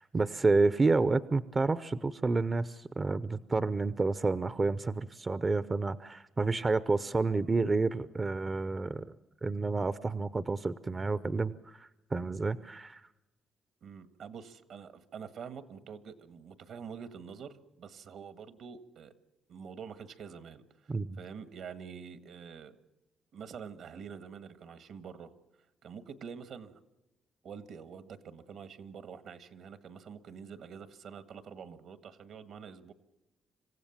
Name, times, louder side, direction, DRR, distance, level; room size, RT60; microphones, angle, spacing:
voice 1, 0.0-9.1 9.4-13.0 20.9-21.2, right 3 dB, 30° right, 15 dB, 0.6 m, -29 dB
voice 2, 13.8-19.1 19.5-20.9 21.2-22.8 23.3-25.3 25.8-26.8 27.4-32.9, right 6 dB, 70° right, 11 dB, 1.7 m, -46 dB
26.5 x 15.5 x 7.3 m, 0.98 s
cardioid pair, 90°, 0 cm